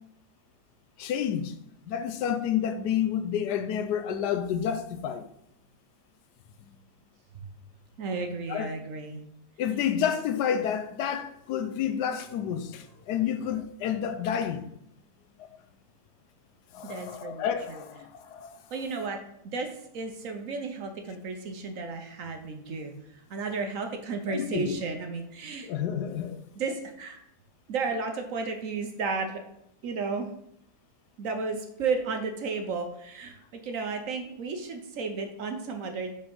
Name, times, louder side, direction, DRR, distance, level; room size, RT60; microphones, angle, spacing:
voice 1, 1.0-1.5 1.9-5.3 8.5-8.7 9.6-14.7 16.7-18.6 24.3-24.8 25.6-26.4, left 9 dB, 85° left, 1.2 m, -29 dB
voice 2, 8.0-9.2 16.8-17.8 18.7-19.7 19.9-25.7 26.6-27.2 27.7-29.4 29.8-30.3 31.2-36.1, right 4 dB, 60° right, 1.1 m, -33 dB
5.4 x 4.4 x 5.4 m
omnidirectional pair, 1.7 m